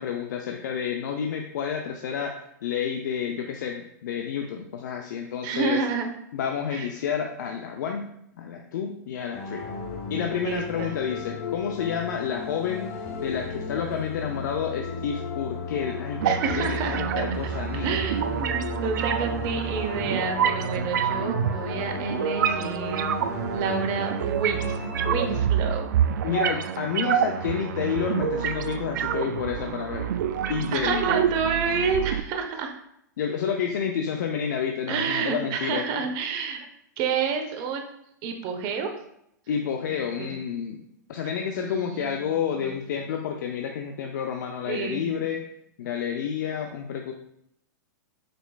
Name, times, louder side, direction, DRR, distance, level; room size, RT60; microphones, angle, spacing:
voice 1, 0.0-5.8 6.3-8.1 8.4-9.7 10.1-12.9 13.2-17.9 26.2-30.1 30.5-31.2 33.2-35.8 39.5-40.8 41.1-45.4 45.8-47.1, left 7 dB, 70° left, 3 dB, 0.5 m, -30 dB
voice 2, 5.4-6.1 6.7-6.9 10.3-10.9 16.2-17.0 17.7-23.2 23.5-26.1 30.7-32.7 34.9-36.7 37.0-37.8 38.2-38.9 39.9-40.3 41.5-43.0 44.7-45.1, right 5 dB, 40° right, 4 dB, 0.8 m, -29 dB
sound 1, 9.3-25.4, left 3 dB, 55° left, 0.9 m, -34 dB
sound 2, 16.2-32.2, right 8 dB, 70° right, 0.4 m, -28 dB
5.2 x 4.4 x 2.3 m, 0.76 s
hypercardioid pair, 125°, 10 cm